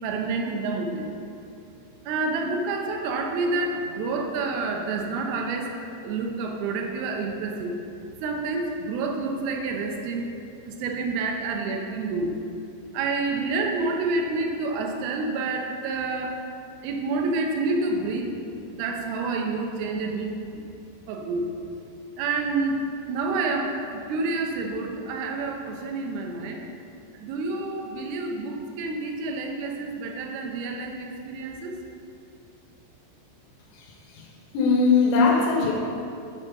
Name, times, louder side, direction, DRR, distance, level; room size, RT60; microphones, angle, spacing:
voice 1, 0.0-1.1 2.1-5.7 6.0-7.8 8.2-10.3 10.7-12.3 12.9-16.4 16.8-18.3 18.7-20.6 21.1-21.5 22.2-26.6 27.1-31.8, right 3 dB, 75° right, 2 dB, 2.4 m, -28 dB
voice 2, 33.7-34.3 34.5-35.7, left 4 dB, 85° left, -1 dB, 1.8 m, -21 dB
8.4 x 4.3 x 6.6 m, 2.7 s
omnidirectional pair, 4.9 m